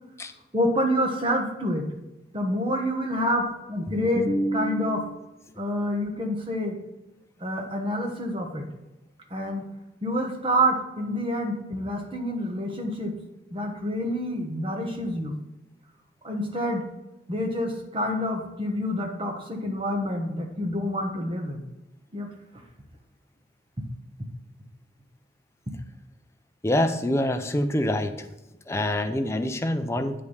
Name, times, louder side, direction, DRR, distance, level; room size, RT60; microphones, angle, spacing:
voice 1, 0.5-1.9 2.3-5.2 5.6-6.8 7.4-8.7 9.3-9.7 10.0-13.2 13.5-15.4 16.2-16.8 17.3-21.6 22.1-22.3, equal, 30° right, 3 dB, 1.3 m, -27 dB
voice 2, 26.6-28.3 28.7-30.2, left 1 dB, 15° left, 7 dB, 0.5 m, -25 dB
8.3 x 5.0 x 5.6 m, 1.0 s
head